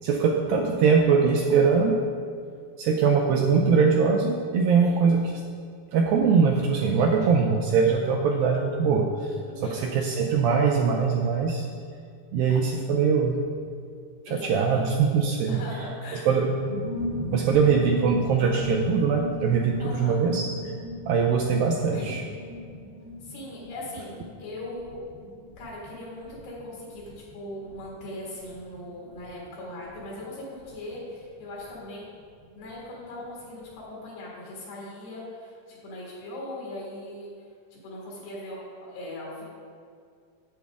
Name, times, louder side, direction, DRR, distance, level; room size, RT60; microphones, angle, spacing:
voice 1, 0.0-2.0 2.8-5.2 5.9-9.1 9.6-11.6 12.3-13.4 14.3-15.6 16.1-16.5 17.3-20.4 21.1-22.2, right 5 dB, 80° right, 1 dB, 2.1 m, -22 dB
voice 2, 9.5-9.8 14.3-14.9 15.5-16.2 19.8-20.2 21.9-22.2 23.2-25.0 25.6-32.1 32.6-37.3 37.7-39.4, left 1 dB, 80° left, -6 dB, 3.9 m, -39 dB
sound 1, 16.4-32.7 33.0-33.1 33.3-33.7, left 1 dB, 60° right, 1.1 m, -39 dB
9.2 x 8.2 x 3.5 m, 2.2 s
omnidirectional pair, 4.6 m